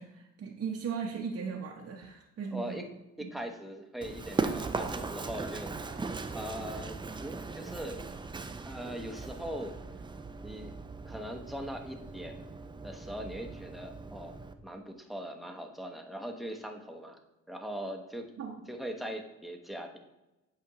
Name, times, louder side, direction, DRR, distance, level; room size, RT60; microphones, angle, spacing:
voice 1, 0.0-2.8 3.2-3.3 18.4-18.6, right 6 dB, 50° right, -1 dB, 0.8 m, -37 dB
voice 2, 2.5-2.9 3.2-5.8 6.3-8.1 8.6-9.8 10.4-10.8 11.0-12.5 12.8-17.2 17.5-18.3 18.7-20.0, equal, ahead, 3 dB, 0.8 m, -40 dB
Run, 4.0-14.5, right 4 dB, 15° right, 0.4 m, -39 dB
8.2 x 5.0 x 2.9 m, 1.0 s
cardioid pair, 90°, 30 cm